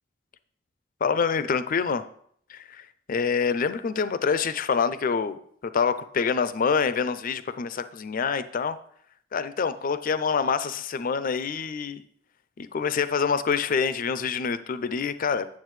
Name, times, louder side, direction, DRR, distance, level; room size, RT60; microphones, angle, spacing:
voice 1, 1.0-2.0 2.5-5.4 5.7-8.8 9.3-12.0 12.6-15.5, left 6 dB, 45° left, 13 dB, 0.4 m, -26 dB
9.2 x 7.2 x 3.2 m, 0.63 s
head